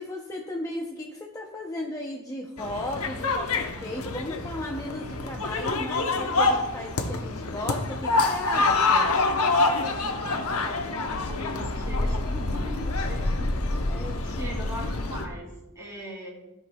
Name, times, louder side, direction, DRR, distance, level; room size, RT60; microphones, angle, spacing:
voice 1, 0.0-9.1 13.9-14.4, left 1 dB, 15° left, -1 dB, 0.6 m, -35 dB
sound 1, 2.6-15.3, left 3 dB, 85° left, 0.9 m, -26 dB
voice 2, 9.6-13.7 14.2-16.3, equal, 15° right, -3 dB, 2.5 m, -40 dB
13.5 x 6.3 x 2.3 m, 0.95 s
head